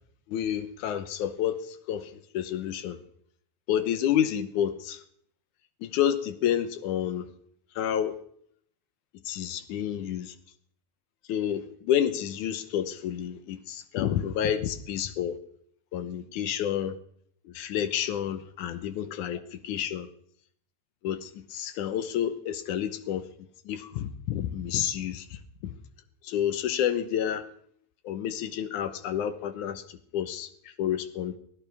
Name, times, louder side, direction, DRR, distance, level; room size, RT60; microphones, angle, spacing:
voice 1, 0.3-3.0 3.7-5.0 5.8-7.3 7.8-8.2 9.3-10.4 11.3-15.4 15.9-17.0 17.5-20.1 21.0-23.3 23.7-25.7 26.2-27.5 28.0-31.4, left 10 dB, 85° left, 10 dB, 2.4 m, -29 dB
23.5 x 15.0 x 3.4 m, 0.66 s
omnidirectional pair, 3.4 m